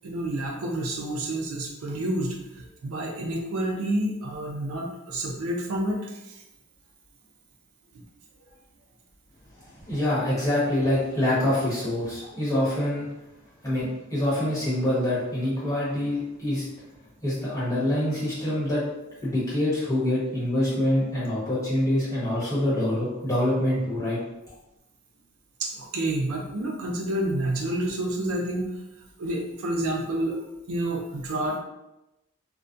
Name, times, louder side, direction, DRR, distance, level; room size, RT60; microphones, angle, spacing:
voice 1, 0.0-6.1 25.6-28.7 29.2-30.4 30.7-31.6, right 1 dB, 75° right, 1 dB, 0.4 m, -29 dB
voice 2, 9.9-13.1 13.6-16.6 17.2-18.8 19.2-24.2, left 1 dB, 15° left, -10 dB, 1.0 m, -25 dB
2.3 x 2.1 x 2.5 m, 0.94 s
head